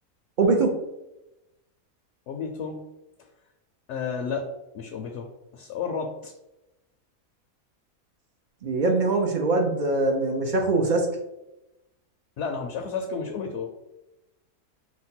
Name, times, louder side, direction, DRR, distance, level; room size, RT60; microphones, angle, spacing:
voice 1, 0.4-0.7 8.6-11.1, right 3 dB, 55° right, 2 dB, 0.5 m, -22 dB
voice 2, 2.3-2.8 3.9-4.5 4.7-6.3 12.4-13.7, left 5 dB, 65° left, 3 dB, 0.8 m, -32 dB
5.1 x 2.1 x 4.2 m, 0.93 s
omnidirectional pair, 1.5 m